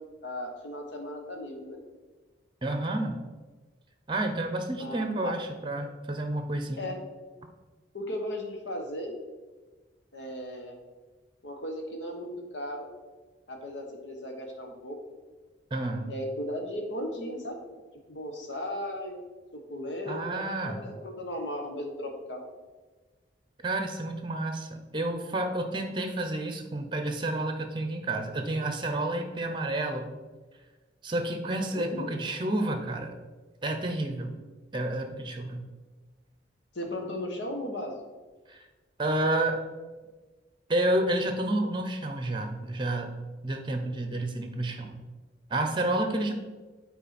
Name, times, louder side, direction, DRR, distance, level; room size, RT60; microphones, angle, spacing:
voice 1, 0.0-1.8 4.8-5.3 6.8-7.0 7.9-9.1 10.1-10.8 11.4-12.9 13.5-15.0 16.1-17.6 18.1-19.2 19.5-22.5 31.7-32.2 36.7-37.9, left 1 dB, 70° left, 3 dB, 1.3 m, -36 dB
voice 2, 2.6-3.2 4.1-6.9 15.7-16.1 20.0-20.8 23.6-30.1 31.0-33.2 33.6-34.3 34.7-35.7 38.5-38.7 39.0-39.6 40.7-43.1 43.4-45.0 45.5-46.3, right 1 dB, 25° right, 5 dB, 0.8 m, -30 dB
8.8 x 4.4 x 4.3 m, 1.3 s
head